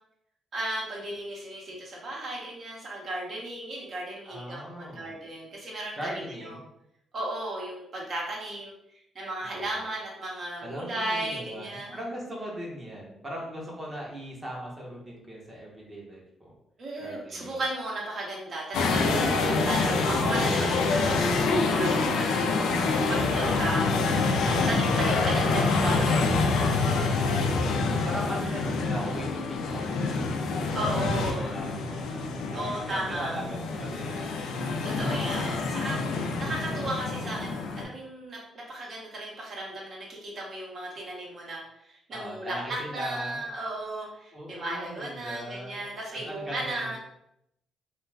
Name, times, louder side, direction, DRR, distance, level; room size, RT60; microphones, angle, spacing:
voice 1, 0.5-6.6 7.1-8.7 9.1-12.0 16.8-23.8 24.4-27.5 27.9-28.1 30.7-31.5 32.5-33.4 34.8-47.0, right 1 dB, 55° right, -3 dB, 0.9 m, -35 dB
voice 2, 4.3-5.1 5.9-6.6 9.5-9.6 10.6-16.5 17.0-17.6 23.3-23.6 27.0-27.6 28.0-30.4 31.3-34.2 42.1-43.4 44.3-45.9 46.2-47.0, equal, 25° right, -3 dB, 0.9 m, -39 dB
sound 1, 18.7-37.8, left 3 dB, 85° left, 0.4 m, -26 dB
2.4 x 2.2 x 3.2 m, 0.78 s
cardioid pair, 90°, 0 cm